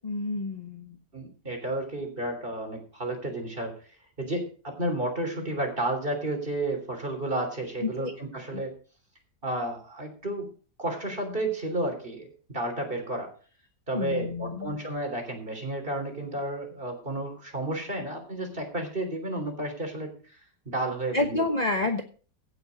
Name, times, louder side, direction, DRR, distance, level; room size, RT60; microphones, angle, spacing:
voice 1, 0.0-1.0 7.8-8.1 8.4-8.6 13.9-14.7 21.1-22.0, left 2 dB, 30° left, 6 dB, 1.0 m, -29 dB
voice 2, 1.1-3.9 4.2-8.7 9.4-10.5 10.8-13.3 13.9-20.4 20.7-21.4, right 1 dB, 30° right, 4 dB, 3.6 m, -32 dB
16.5 x 6.9 x 5.2 m, 0.40 s
omnidirectional pair, 1.9 m